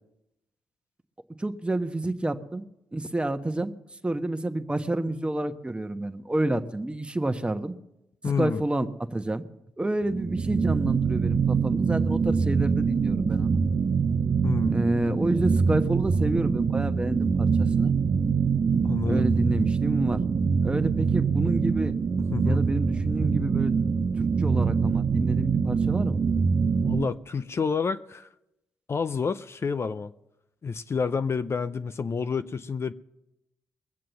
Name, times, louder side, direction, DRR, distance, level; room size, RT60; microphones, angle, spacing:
voice 1, 1.4-2.6 2.9-3.7 4.0-7.7 8.4-9.4 9.8-13.6 14.7-17.9 19.1-20.2 20.6-21.9 22.4-23.7 24.2-26.2, right 1 dB, 15° right, 1.2 m, -29 dB
voice 2, 8.2-8.6 14.4-14.8 18.8-19.3 22.3-22.7 26.8-28.3 28.9-30.1 30.6-32.9, left 5 dB, 40° left, 0.6 m, -29 dB
sound 1, 10.0-27.1, right 5 dB, 50° right, 0.8 m, -24 dB
21.5 x 7.5 x 6.9 m
supercardioid pair, 50°, 7 cm